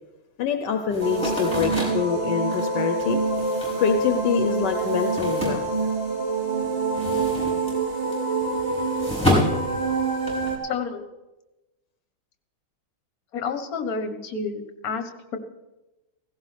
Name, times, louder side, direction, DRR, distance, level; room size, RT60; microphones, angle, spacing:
voice 1, 0.4-3.2 3.8-5.7 9.4-9.5, left 8 dB, 75° left, 7 dB, 1.3 m, -26 dB
sound 1, 0.9-6.3 6.6-10.5, left 1 dB, 5° left, 5.3 m, -29 dB
sound 2, 1.0-10.6, right 3 dB, 30° right, 2.0 m, -26 dB
voice 2, 10.6-11.1 13.3-15.4, left 5 dB, 55° left, 7 dB, 1.5 m, -30 dB
16.5 x 16.5 x 3.3 m, 1.1 s
omnidirectional pair, 2.0 m